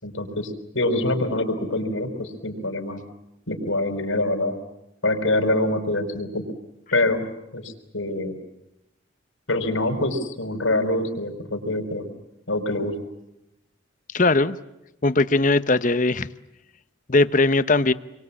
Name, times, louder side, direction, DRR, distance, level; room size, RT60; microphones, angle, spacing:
voice 1, 0.0-3.0 3.5-4.5 5.0-6.4 6.9-7.2 7.5-8.4 9.5-12.1 12.5-12.9, left 2 dB, 80° left, 5.0 m, -25 dB
voice 2, 14.1-14.6 15.0-16.3 17.1-17.9, left 2 dB, 40° left, 0.9 m, -19 dB
28.0 x 23.0 x 8.5 m
head